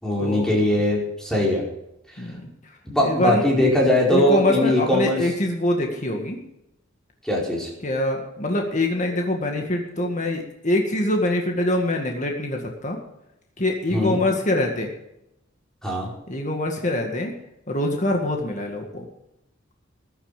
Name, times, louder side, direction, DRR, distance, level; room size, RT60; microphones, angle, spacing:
voice 1, 0.0-1.7 2.8-5.2 7.2-7.7 13.9-14.2 15.8-16.1, left 1 dB, 5° left, -3 dB, 4.9 m, -21 dB
voice 2, 3.0-3.5 4.1-6.4 7.8-13.0 13.6-14.9 16.3-17.3 17.7-19.1, left 1 dB, 40° left, 2 dB, 1.9 m, -24 dB
14.5 x 11.5 x 5.2 m, 0.83 s
head